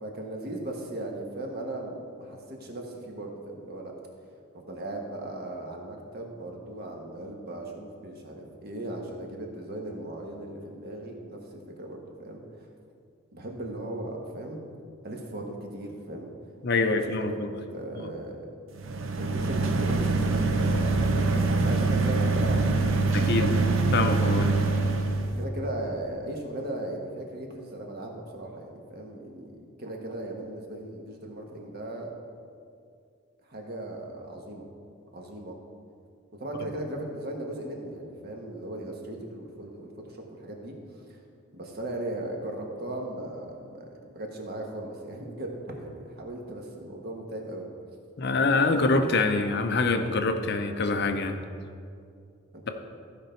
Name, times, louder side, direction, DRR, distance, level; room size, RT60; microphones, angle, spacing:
voice 1, 0.0-3.9 4.5-12.7 13.3-14.6 15.0-16.3 16.8-17.4 17.7-18.5 19.2-23.0 25.4-32.1 33.5-34.6 35.1-35.6 36.4-41.2 41.5-47.7, right 1 dB, 45° right, 1 dB, 1.3 m, -37 dB
voice 2, 16.6-17.5 18.0-18.1 23.1-23.5 23.9-24.5 48.2-51.4, left 3 dB, 50° left, 6 dB, 0.6 m, -25 dB
sound 1, 18.7-25.4, right 3 dB, 65° right, 0.7 m, -24 dB
15.0 x 5.3 x 4.4 m, 2.3 s
head